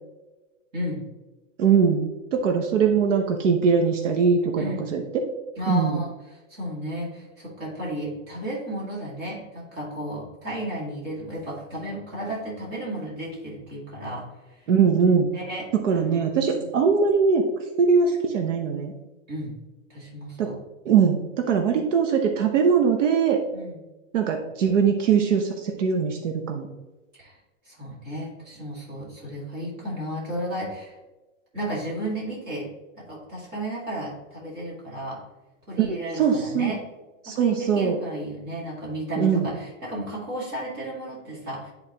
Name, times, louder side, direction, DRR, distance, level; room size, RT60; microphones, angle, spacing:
voice 1, 1.6-5.2 5.7-6.0 14.7-15.3 15.7-17.5 17.8-18.9 20.4-20.5 20.9-23.4 24.1-26.7 35.8-36.8 37.2-38.0 39.2-39.4, right 6 dB, 75° right, 4 dB, 0.9 m, -21 dB
voice 2, 5.6-6.1 6.5-14.7 15.3-16.7 19.3-19.6 19.9-20.6 23.5-23.8 27.2-27.4 27.7-31.0 31.5-32.7 33.0-35.2 35.7-36.8 37.3-41.7, right 1 dB, 25° right, -5 dB, 1.9 m, -33 dB
10.0 x 4.0 x 2.9 m, 1.1 s
supercardioid pair, 180°, 38 cm